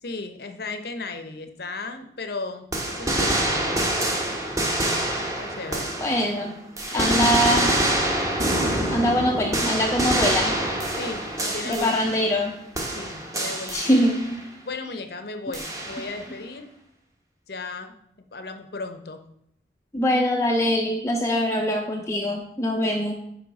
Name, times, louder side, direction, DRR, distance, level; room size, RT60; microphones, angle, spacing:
voice 1, 0.0-3.6 5.4-5.9 6.9-7.5 10.9-12.0 12.9-13.8 14.6-16.7 17.5-17.9 18.3-19.2, left 3 dB, 55° left, 7 dB, 0.7 m, -35 dB
sound 1, 2.7-6.4 6.8-12.5 12.7-14.4 15.5-16.3, right 1 dB, 20° right, 1.0 m, -26 dB
voice 2, 6.0-6.6 6.9-7.7 8.9-10.5 11.7-12.5 13.7-14.4 19.9-23.1, equal, 15° left, 1 dB, 0.5 m, -23 dB
9.7 x 3.3 x 5.2 m, 0.77 s
head